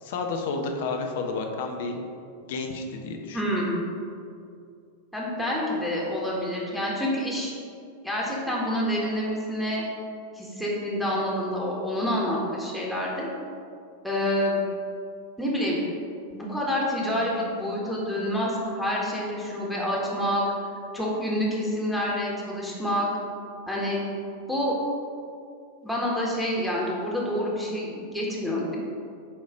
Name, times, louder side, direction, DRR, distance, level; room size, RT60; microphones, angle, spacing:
voice 1, 0.0-2.0 2.4-3.4, left 4 dB, 55° left, 3 dB, 0.8 m, -31 dB
voice 2, 3.3-3.8 5.1-7.5 8.0-9.8 10.3-13.3 14.0-14.6 15.4-15.8 16.3-20.4 20.9-23.1 23.7-24.0 24.5-24.8 25.8-28.8, equal, ahead, -6 dB, 1.6 m, -27 dB
8.7 x 3.1 x 5.1 m, 2.4 s
figure-of-eight pair, 90°, 0 cm